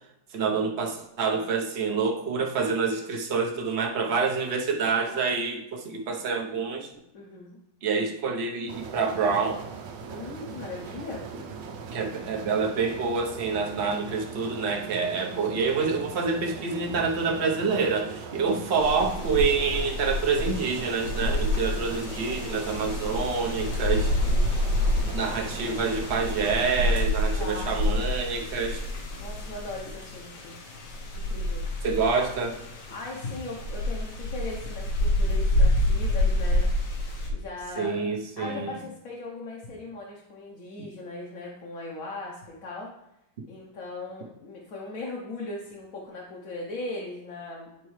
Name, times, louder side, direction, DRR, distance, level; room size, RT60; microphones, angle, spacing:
voice 1, 0.3-6.9 7.8-9.7 11.9-24.1 24.5-24.6 25.1-28.8 31.8-32.6 37.8-38.8, right 5 dB, 45° right, 1 dB, 0.9 m, -27 dB
voice 2, 7.1-7.6 10.1-11.2 21.7-22.0 27.3-27.9 29.2-30.6 31.1-31.7 32.9-36.7 37.3-38.1 38.4-42.9 43.5-47.9, left 2 dB, 55° left, -3 dB, 1.2 m, -38 dB
sound 1, 8.7-27.1, right 5 dB, 90° right, 1.4 m, -40 dB
sound 2, 18.8-37.3, left 1 dB, 75° left, 1.7 m, -28 dB
9.9 x 4.5 x 3.2 m, 0.85 s
omnidirectional pair, 1.9 m